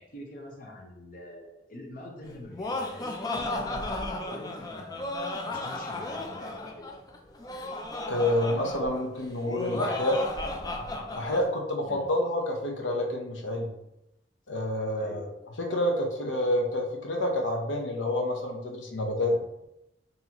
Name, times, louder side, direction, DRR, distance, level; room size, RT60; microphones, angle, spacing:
voice 1, 0.0-5.0 5.5-6.9 11.9-12.1 15.0-15.2 19.3-19.4, left 1 dB, 50° left, 0 dB, 0.8 m, -45 dB
Laughter, 2.3-11.4, left 2 dB, 20° left, 0.3 m, -34 dB
voice 2, 8.1-10.2 11.1-13.7 14.5-15.3 15.6-19.3, left 1 dB, 85° left, 2 dB, 0.7 m, -28 dB
4.0 x 2.7 x 2.9 m, 0.87 s
head